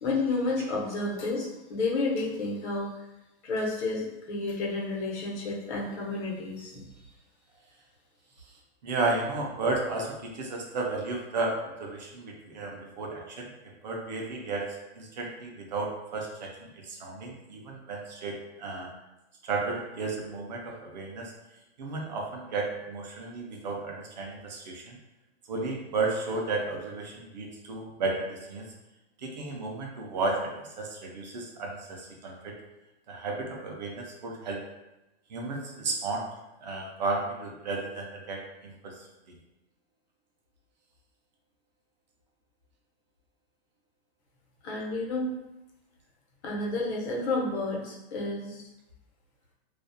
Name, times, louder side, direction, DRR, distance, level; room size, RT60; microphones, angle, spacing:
voice 1, 0.0-2.9 3.4-6.8 44.6-45.3 46.4-48.6, left 2 dB, 90° left, -3 dB, 0.9 m, -31 dB
voice 2, 8.8-14.7 15.0-18.9 19.4-21.3 21.8-25.0 25.5-28.7 29.2-32.5 33.1-34.6 35.3-36.3 36.6-39.0 39.3-39.4, right 3 dB, 45° right, -1 dB, 0.4 m, -33 dB
2.3 x 2.0 x 2.6 m, 0.96 s
supercardioid pair, 180°, 32 cm